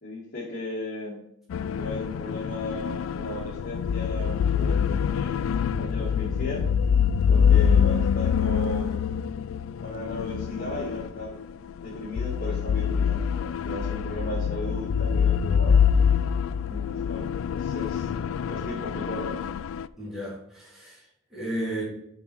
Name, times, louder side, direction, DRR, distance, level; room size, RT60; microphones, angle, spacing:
voice 1, 0.0-1.2 1.8-6.7 7.3-9.2 9.8-11.4 11.8-15.8 16.6-19.4, left 1 dB, 45° left, -7 dB, 2.1 m, -36 dB
sound 1, 1.5-19.9, left 7 dB, 70° left, 0.3 m, -25 dB
voice 2, 20.0-21.8, right 1 dB, ahead, -8 dB, 3.3 m, -34 dB
7.3 x 5.4 x 4.6 m, 0.75 s
head